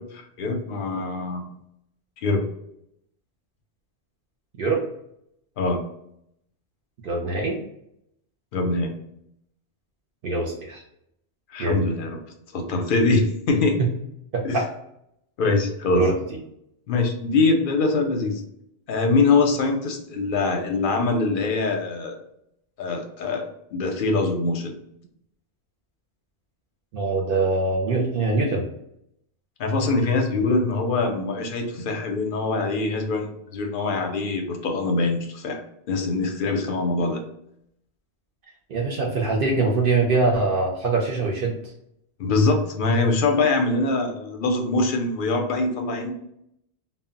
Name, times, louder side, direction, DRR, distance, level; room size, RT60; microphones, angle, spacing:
voice 1, 0.0-1.4 2.2-2.4 5.6-5.8 8.5-8.9 11.5-12.2 12.5-13.8 14.4-14.6 15.4-16.1 16.9-18.4 18.9-22.2 22.8-24.8 29.6-35.6 35.9-37.2 42.2-46.1, left 3 dB, 60° left, 3 dB, 0.6 m, -23 dB
voice 2, 7.0-7.6 10.2-10.8 11.6-11.9 13.8-13.9 14.3-14.7 15.9-16.1 26.9-28.7 38.7-41.5, right 3 dB, 60° right, -1 dB, 0.7 m, -23 dB
2.0 x 2.0 x 3.6 m, 0.76 s
omnidirectional pair, 1.1 m